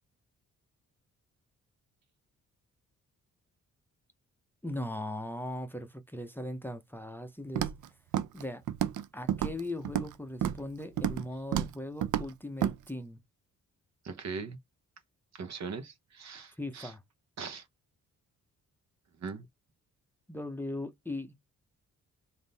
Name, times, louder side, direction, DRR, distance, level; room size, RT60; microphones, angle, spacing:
voice 1, 4.6-7.7 8.3-8.6 9.1-13.2 16.6-17.0 20.3-21.4, left 1 dB, 5° left, 0.7 m, -39 dB
Walk footsteps, 7.6-7.9 8.1-8.4 8.7-9.0 9.3-10.1 10.4-10.7 11.0-11.3 11.5-11.7 12.0-12.3 12.6-12.7, right 10 dB, 75° right, 0.5 m, -30 dB
voice 2, 14.0-14.6 15.3-16.9 17.4-17.7 19.2-19.5, right 5 dB, 60° right, 1.0 m, -40 dB
3.6 x 2.7 x 4.0 m
cardioid pair, 95°, 31 cm